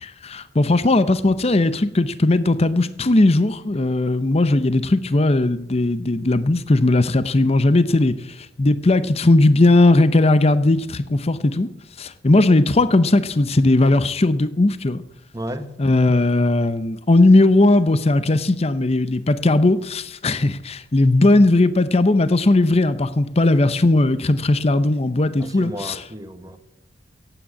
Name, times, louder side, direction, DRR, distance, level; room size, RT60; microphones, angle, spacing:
voice 1, 0.0-8.1 8.6-11.7 12.0-15.0 15.8-26.0, left 2 dB, 35° left, 0.7 m, -17 dB
voice 2, 15.3-15.8 25.4-26.6, equal, 20° right, 1.2 m, -33 dB
15.0 x 8.9 x 8.3 m
head